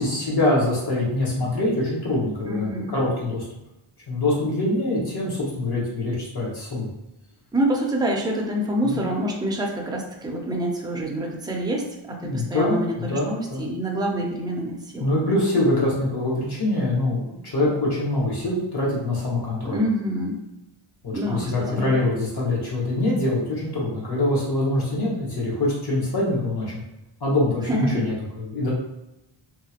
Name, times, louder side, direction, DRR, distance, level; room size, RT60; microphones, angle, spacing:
voice 1, 0.0-3.4 4.1-6.9 8.8-9.0 12.2-13.6 15.0-19.8 21.0-26.8 27.2-28.7, left 1 dB, 50° left, -5 dB, 1.1 m, -24 dB
voice 2, 2.5-2.9 7.5-15.1 19.6-20.4 21.1-22.0 27.7-28.0, right 1 dB, 10° right, -1 dB, 0.3 m, -26 dB
2.9 x 2.4 x 2.8 m, 0.93 s
wide cardioid pair, 170°, 50 cm